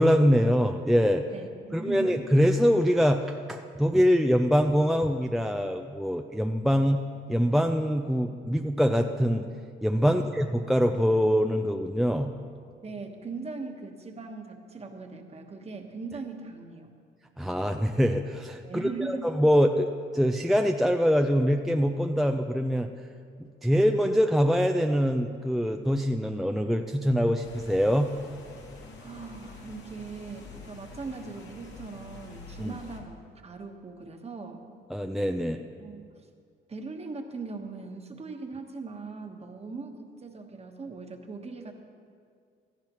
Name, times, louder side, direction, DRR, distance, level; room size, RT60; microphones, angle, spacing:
voice 1, 0.0-1.2 1.7-7.0 7.3-9.5 9.8-12.3 17.4-22.9 23.6-28.1 32.6-32.8 34.9-35.6, equal, ahead, 5 dB, 0.5 m, -24 dB
voice 2, 1.3-2.2 10.0-10.3 12.8-16.9 18.6-19.3 29.0-33.2 33.4-34.6 35.8-36.0 36.7-41.7, right 4 dB, 30° right, 4 dB, 1.3 m, -40 dB
sound 1, 27.4-33.0, left 3 dB, 65° left, 2.2 m, -46 dB
16.5 x 13.0 x 3.0 m, 2.2 s
cardioid pair, 90°, 20 cm